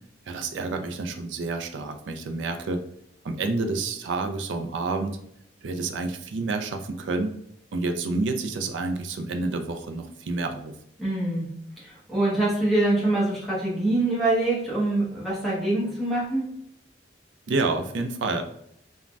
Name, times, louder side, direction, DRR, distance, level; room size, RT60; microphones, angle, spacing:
voice 1, 0.3-2.8 3.2-5.2 5.6-7.3 7.7-10.7 17.5-18.4, right 3 dB, 85° right, 6 dB, 0.4 m, -29 dB
voice 2, 11.0-11.5 11.8-16.5, right 2 dB, ahead, -7 dB, 0.8 m, -24 dB
3.1 x 2.2 x 2.5 m, 0.71 s
head